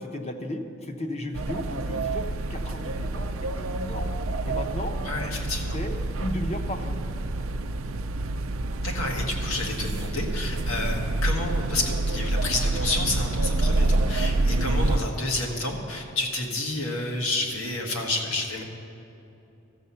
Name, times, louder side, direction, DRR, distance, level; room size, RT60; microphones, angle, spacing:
voice 1, 0.0-2.2 2.5-3.3 3.6-4.1 4.5-4.9 5.7-7.0, left 1 dB, 30° left, 4 dB, 0.8 m, -34 dB
sound 1, 1.3-15.0, right 2 dB, 75° right, 0.5 m, -27 dB
voice 2, 5.0-5.8 8.8-18.6, left 2 dB, 85° left, 1 dB, 1.6 m, -30 dB
13.5 x 7.5 x 5.7 m, 2.9 s
head